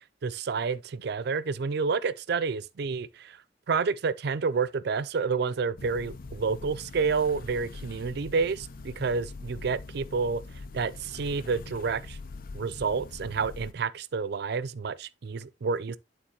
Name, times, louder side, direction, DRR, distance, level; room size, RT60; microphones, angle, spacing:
voice 1, 0.2-3.4 3.7-10.4 10.7-12.2 12.5-16.0, right 5 dB, 65° right, 0.5 m, -29 dB
sound 1, 5.8-13.7, left 3 dB, 55° left, 0.5 m, -43 dB
11.5 x 3.9 x 2.9 m
head